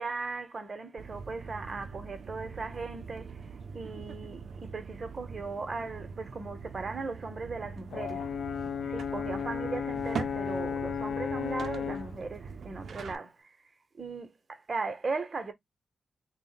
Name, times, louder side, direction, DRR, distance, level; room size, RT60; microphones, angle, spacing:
voice 1, 0.0-8.3 8.8-13.5 14.0-15.5, right 3 dB, 35° right, 0.8 m, -38 dB
sound 1, 1.0-13.2, right 5 dB, 65° right, 0.4 m, -42 dB
Brass instrument, 7.9-12.1, left 7 dB, 75° left, 0.4 m, -34 dB
3.9 x 2.1 x 3.9 m
wide cardioid pair, 160°, 0 cm